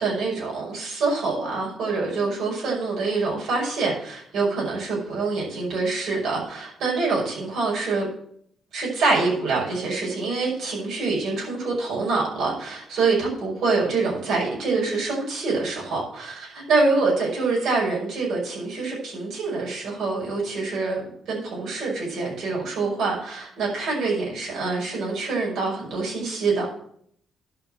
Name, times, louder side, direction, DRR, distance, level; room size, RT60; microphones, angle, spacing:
voice 1, 0.0-8.1 8.7-26.7, right 3 dB, 75° right, -4 dB, 5.6 m, -25 dB
11.0 x 5.6 x 7.6 m, 0.66 s
cardioid pair, 90°, 0 cm